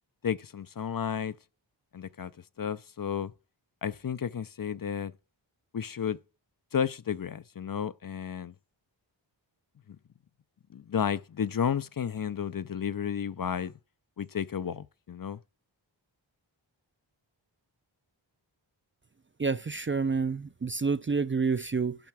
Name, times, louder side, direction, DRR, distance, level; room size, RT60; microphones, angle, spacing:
voice 1, 0.2-1.3 1.9-2.3 2.6-3.3 3.8-5.1 5.7-6.2 6.7-8.5 10.7-13.7 14.2-15.4, left 8 dB, 45° left, 0.5 m, -32 dB
voice 2, 19.4-22.0, right 4 dB, 25° right, 0.4 m, -28 dB
10.5 x 5.6 x 6.1 m
wide cardioid pair, 55°, 47 cm